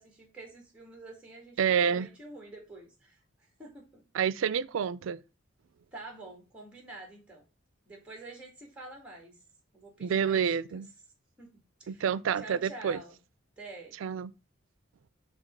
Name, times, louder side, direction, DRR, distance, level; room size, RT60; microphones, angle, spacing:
voice 1, 0.0-3.2 3.6-4.0 5.9-7.4 7.9-9.4 9.7-10.8 11.4-11.5 11.8-12.1 12.4-13.2 13.6-14.0, right 2 dB, 5° right, 1.8 m, -47 dB
voice 2, 1.6-2.1 4.1-5.2 10.0-10.9 11.9-13.0 14.0-14.3, right 7 dB, 90° right, 0.4 m, -28 dB
5.1 x 3.5 x 5.2 m
head